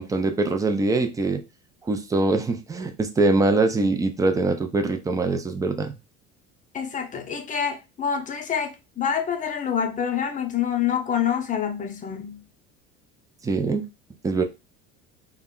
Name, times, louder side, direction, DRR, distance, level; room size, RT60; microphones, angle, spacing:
voice 1, 0.0-1.4 1.8-6.0 13.4-13.9 14.2-14.4, right 3 dB, 10° right, 0.4 m, -23 dB
voice 2, 6.7-12.4, left 8 dB, 25° left, 0.6 m, -27 dB
2.2 x 2.0 x 3.6 m
supercardioid pair, 90°, 29 cm